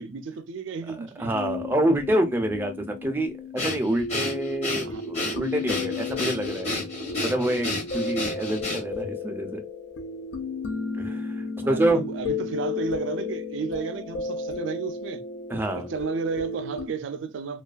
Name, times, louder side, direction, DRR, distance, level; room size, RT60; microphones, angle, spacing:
voice 1, 0.0-1.3 4.8-5.0 11.6-15.2 15.7-17.6, right 5 dB, 75° right, 0.4 m, -32 dB
voice 2, 0.9-6.7 7.2-9.6 11.0-12.0 15.5-15.9, right 1 dB, 10° right, 0.4 m, -27 dB
sound 1, 1.3-16.9, left 4 dB, 70° left, 0.3 m, -34 dB
Breathing, 3.6-9.1, left 2 dB, 35° left, 0.9 m, -31 dB
2.4 x 2.3 x 2.3 m
head